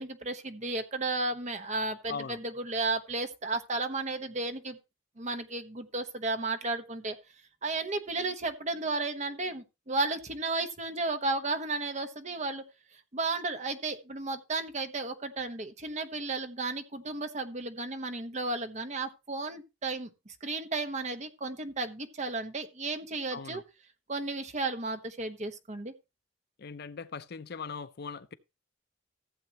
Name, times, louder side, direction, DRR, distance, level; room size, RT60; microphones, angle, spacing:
voice 1, 0.0-4.8 5.2-7.2 7.6-12.6 13.1-23.6 24.1-25.9, right 3 dB, 35° right, 1.1 m, -33 dB
voice 2, 2.1-2.4 23.3-23.6 26.6-28.3, left 5 dB, 55° left, 0.6 m, -40 dB
15.0 x 7.8 x 3.0 m
head